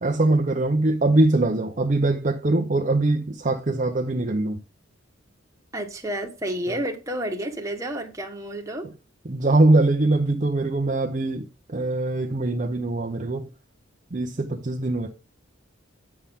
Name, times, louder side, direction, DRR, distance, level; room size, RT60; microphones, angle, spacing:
voice 1, 0.0-4.6 6.7-6.8 9.3-13.5 14.1-15.1, right 2 dB, 35° right, 0.6 m, -22 dB
voice 2, 5.7-8.9, right 1 dB, 15° right, 1.1 m, -30 dB
8.7 x 5.6 x 3.5 m
head